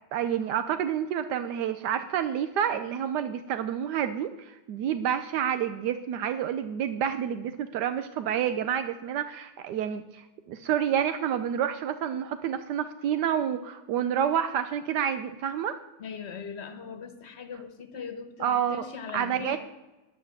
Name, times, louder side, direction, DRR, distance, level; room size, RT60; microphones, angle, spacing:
voice 1, 0.1-15.8 18.4-18.8 19.1-19.6, right 9 dB, 80° right, 10 dB, 1.2 m, -29 dB
voice 2, 16.0-19.6, left 6 dB, 45° left, 8 dB, 1.3 m, -40 dB
9.9 x 8.1 x 7.3 m, 1.1 s
omnidirectional pair, 1.8 m